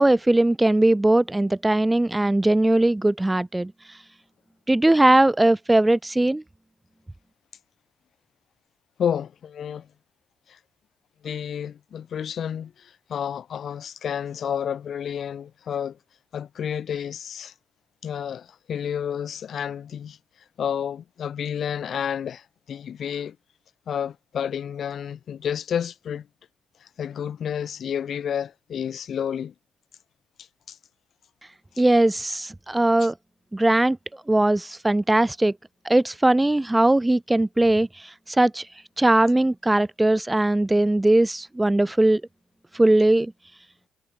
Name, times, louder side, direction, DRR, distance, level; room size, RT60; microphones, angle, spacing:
voice 1, 0.0-3.7 4.7-6.4 31.8-33.1 33.5-34.0 34.3-35.5 35.8-38.7 39.0-42.2 42.7-43.3, right 1 dB, 10° right, 0.3 m, -20 dB
voice 2, 9.0-9.9 10.5-10.6 11.2-16.0 16.3-17.5 18.0-20.2 20.6-23.4 23.9-26.3 26.8-29.5 30.7-30.8 31.8-31.9, left 8 dB, 60° left, 1.8 m, -30 dB
cardioid pair, 90°, 0 cm